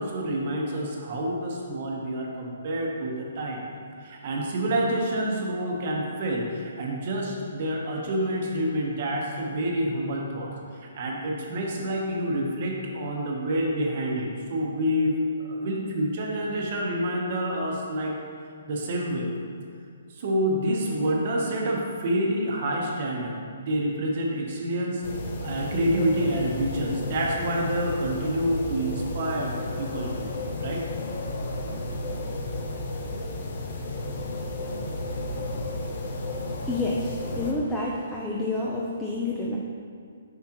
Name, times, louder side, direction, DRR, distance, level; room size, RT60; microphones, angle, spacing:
voice 1, 0.0-3.6 4.0-18.1 18.7-19.3 20.1-25.0 25.4-29.5 29.8-30.8, right 1 dB, 40° right, -1 dB, 0.9 m, -28 dB
sound 1, 25.0-37.5, left 2 dB, 45° left, 0.8 m, -33 dB
voice 2, 36.7-39.6, left 2 dB, 5° left, -5 dB, 0.4 m, -29 dB
7.3 x 5.7 x 3.0 m, 2.2 s
hypercardioid pair, 170°, 0 cm